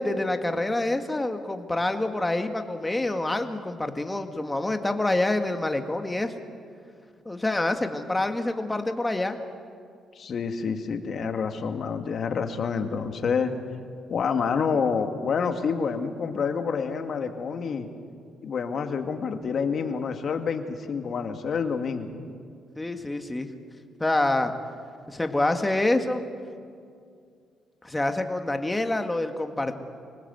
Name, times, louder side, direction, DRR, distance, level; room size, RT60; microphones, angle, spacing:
voice 1, 0.0-6.3 7.3-9.4 22.8-23.5 24.0-24.5 25.1-26.2 27.8-29.8, left 2 dB, 15° left, 6 dB, 1.9 m, -26 dB
voice 2, 10.2-13.5 14.1-17.9 18.4-22.2, left 6 dB, 55° left, 6 dB, 2.1 m, -28 dB
26.0 x 19.0 x 8.0 m, 2.3 s
cardioid pair, 90°, 0 cm